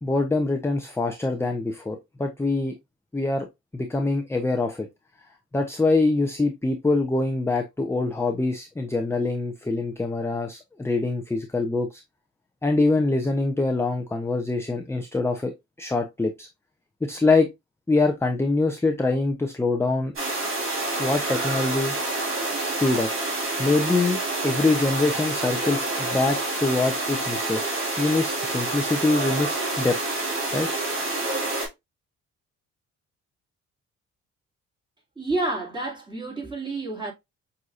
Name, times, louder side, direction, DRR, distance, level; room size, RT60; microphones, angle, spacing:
voice 1, 0.0-2.7 3.1-3.5 3.7-4.9 5.5-12.0 12.6-15.5 15.8-16.5 17.0-17.5 17.9-20.1 21.0-21.9 22.8-23.1 23.6-30.0 30.5-30.7, left 3 dB, 10° left, 0.6 m, -24 dB
sound 1, 20.2-31.7, right 2 dB, 45° right, 2.8 m, -28 dB
voice 2, 35.2-37.1, right 2 dB, 15° right, 2.3 m, -29 dB
6.2 x 2.8 x 2.4 m
cardioid pair, 90°, 30 cm